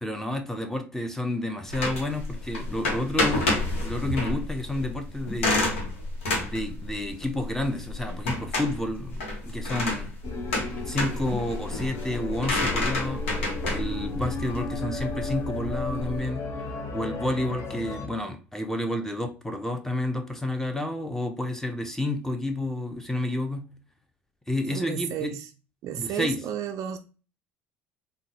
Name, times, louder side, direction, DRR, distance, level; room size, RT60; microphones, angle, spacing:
voice 1, 0.0-3.5 3.8-5.6 6.5-10.2 10.9-13.2 13.7-16.5 16.9-23.7 24.5-25.3 26.0-26.4, left 1 dB, 5° left, 0.6 m, -30 dB
sound 1, 1.7-16.2, left 2 dB, 85° left, 0.9 m, -30 dB
sound 2, 10.2-18.1, left 3 dB, 45° left, 0.7 m, -34 dB
voice 2, 24.7-25.5 25.8-27.0, right 9 dB, 55° right, 0.3 m, -32 dB
3.7 x 2.2 x 2.7 m
hypercardioid pair, 65°, 7 cm